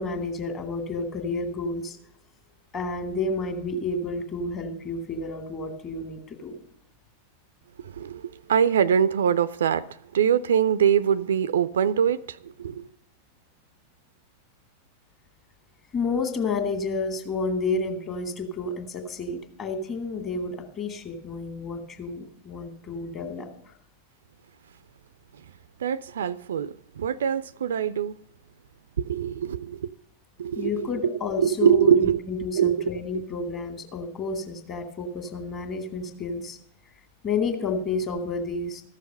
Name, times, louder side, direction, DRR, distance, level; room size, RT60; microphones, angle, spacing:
voice 1, 0.0-2.0 2.7-6.6 15.9-23.5 30.6-32.0 32.3-36.6 37.2-38.8, left 3 dB, 30° left, 1.9 m, -30 dB
voice 2, 7.8-9.9 10.1-12.9 25.8-28.1 29.0-29.9 30.4-32.2 32.6-32.9, right 8 dB, 65° right, 0.4 m, -23 dB
14.0 x 6.5 x 6.7 m
figure-of-eight pair, 90°, 0 cm